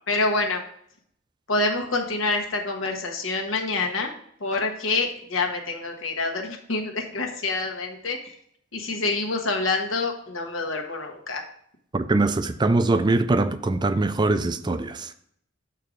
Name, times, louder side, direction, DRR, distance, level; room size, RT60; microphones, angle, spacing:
voice 1, 0.1-0.6 1.5-4.1 4.4-8.3 8.7-11.4, left 3 dB, 85° left, 1.3 m, -27 dB
voice 2, 11.9-15.1, right 2 dB, 20° right, 0.4 m, -22 dB
6.7 x 4.6 x 4.9 m
head